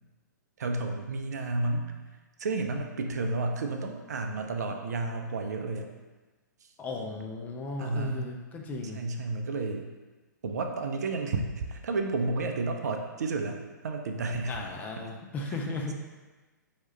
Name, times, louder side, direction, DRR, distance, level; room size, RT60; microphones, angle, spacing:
voice 1, 0.6-1.9 2.4-5.9 7.8-8.3 8.9-9.9 10.4-14.6, right 3 dB, 60° right, 4 dB, 0.5 m, -31 dB
voice 2, 6.8-9.0 14.5-15.9, left 2 dB, 15° left, 1 dB, 0.4 m, -36 dB
4.5 x 2.8 x 3.2 m, 1.2 s
figure-of-eight pair, 120°, 10 cm